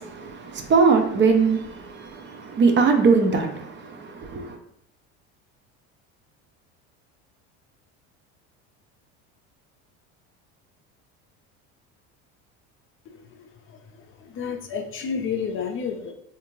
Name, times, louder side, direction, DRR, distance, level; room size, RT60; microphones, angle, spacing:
voice 1, 0.0-4.6, right 4 dB, 35° right, 4 dB, 0.5 m, -21 dB
voice 2, 13.1-13.5 14.0-16.1, left 6 dB, 40° left, 4 dB, 0.5 m, -31 dB
3.5 x 2.5 x 3.0 m, 0.70 s
supercardioid pair, 105°, 33 cm